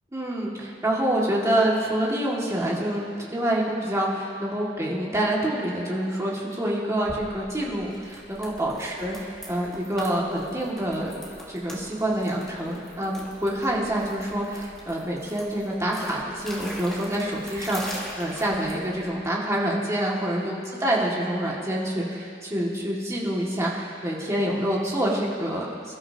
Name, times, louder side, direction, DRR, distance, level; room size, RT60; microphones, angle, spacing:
voice 1, 0.1-9.2 9.5-11.1 11.5-26.0, right 1 dB, 15° right, -4 dB, 2.2 m, -27 dB
sound 1, 7.0-19.1, equal, ahead, 2.1 m, -42 dB
27.0 x 13.0 x 2.9 m, 2.4 s
head